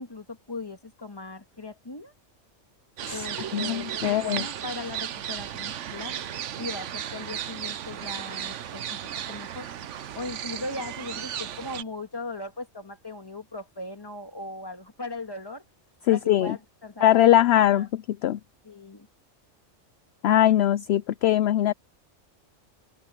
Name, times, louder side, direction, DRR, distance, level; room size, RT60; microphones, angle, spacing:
voice 1, 0.0-2.1 3.1-6.1 6.6-9.7 10.1-15.6 16.1-17.2 17.5-17.9 18.6-19.1, left 2 dB, 20° left, 1.8 m, -38 dB
sound 1, 3.0-11.8, right 10 dB, 70° right, 1.1 m, -35 dB
voice 2, 3.5-4.4 16.1-16.6 17.0-18.4 20.2-21.7, left 12 dB, 65° left, 0.7 m, -21 dB
open air
omnidirectional pair, 1.3 m